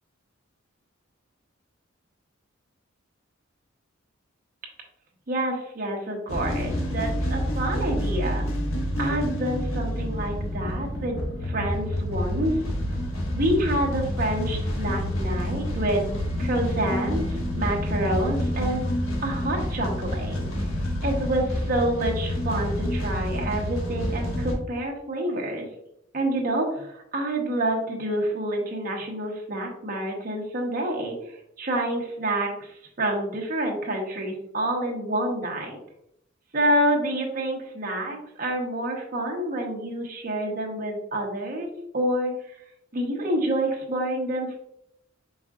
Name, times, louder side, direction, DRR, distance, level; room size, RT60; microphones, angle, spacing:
voice 1, 5.3-8.5 9.0-12.5 13.3-16.0 16.4-18.8 19.2-20.4 21.0-25.7 26.1-31.2 31.6-35.8 36.5-41.7 41.9-42.3 42.9-44.6, right 1 dB, 45° right, 0 dB, 1.0 m, -28 dB
sound 1, 6.3-24.5, left 1 dB, 85° left, 1.0 m, -28 dB
5.2 x 3.6 x 2.4 m, 0.76 s
head